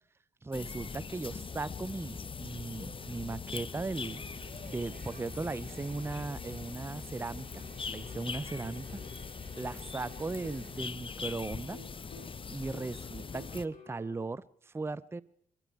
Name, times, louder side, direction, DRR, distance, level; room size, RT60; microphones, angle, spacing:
voice 1, 0.4-4.2 4.6-9.0 9.6-11.8 12.2-15.2, right 3 dB, 15° right, 18 dB, 0.5 m, -38 dB
sound 1, 0.5-13.7, left 5 dB, 30° left, 0.6 m, -42 dB
sound 2, 3.8-10.7, right 6 dB, 55° right, 2.8 m, -54 dB
sound 3, 7.5-14.3, left 4 dB, 50° left, 3.2 m, -54 dB
23.5 x 12.0 x 4.6 m, 0.67 s
supercardioid pair, 55°, 18 cm